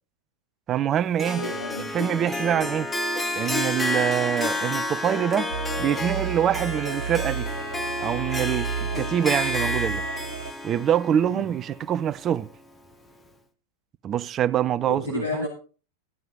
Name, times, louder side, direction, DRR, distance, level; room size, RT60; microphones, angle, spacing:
voice 1, 0.7-1.5 1.9-2.9 3.4-5.5 5.8-7.5 8.0-10.0 10.6-12.5 14.0-15.5, right 10 dB, 30° right, 0.5 m, -25 dB
Harp, 1.2-12.4, left 1 dB, 10° left, 1.1 m, -30 dB
voice 2, 1.4-1.9 2.5-2.7 8.9-9.1 11.2-11.5 14.9-15.5, left 3 dB, 80° left, 2.1 m, -32 dB
sound 1, 5.5-10.5, right 7 dB, 75° right, 0.5 m, -32 dB
13.5 x 9.1 x 3.7 m
figure-of-eight pair, 90°, 0 cm